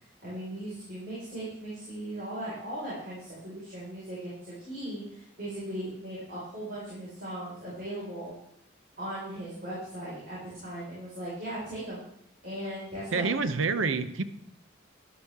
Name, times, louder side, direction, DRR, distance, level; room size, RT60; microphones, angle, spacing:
voice 1, 0.2-8.3 9.0-12.0 12.4-13.3, right 1 dB, 50° right, -7 dB, 4.8 m, -38 dB
voice 2, 13.1-14.2, right 4 dB, 85° right, 11 dB, 0.8 m, -27 dB
12.0 x 11.0 x 3.6 m, 0.73 s
head